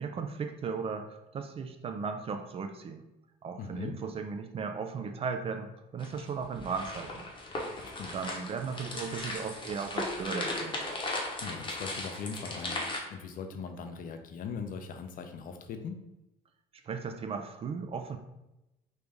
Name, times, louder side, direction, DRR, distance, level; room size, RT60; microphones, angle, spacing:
voice 1, 0.0-3.1 3.4-7.2 7.6-7.8 8.1-10.8 16.8-18.2, right 5 dB, 35° right, 6 dB, 0.4 m, -36 dB
voice 2, 3.6-4.0 7.8-8.2 11.4-12.8 13.1-16.0, left 5 dB, 55° left, 6 dB, 0.5 m, -40 dB
sound 1, 6.0-13.0, left 2 dB, 30° left, 0.8 m, -37 dB
3.2 x 2.6 x 3.4 m, 0.92 s
cardioid pair, 110°, 17 cm